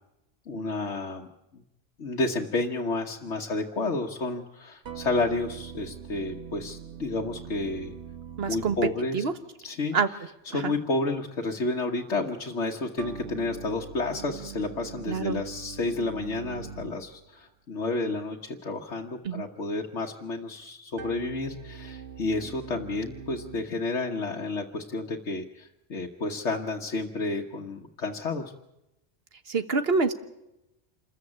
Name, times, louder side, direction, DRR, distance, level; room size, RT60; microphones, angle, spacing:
voice 1, 0.5-1.3 1.5-1.6 2.0-7.9 8.5-9.2 9.6-10.0 10.5-28.5, left 3 dB, 90° left, 0 dB, 1.6 m, -31 dB
sound 1, 4.8-9.5 13.0-17.3 21.0-23.6, right 7 dB, 85° right, 1.4 m, -42 dB
voice 2, 8.4-8.8 9.1-9.3 9.9-10.1 10.5-10.8 15.1-15.4 19.2-19.4 29.5-30.1, right 4 dB, 60° right, 10 dB, 1.5 m, -26 dB
27.0 x 14.5 x 8.7 m, 0.91 s
omnidirectional pair, 1.2 m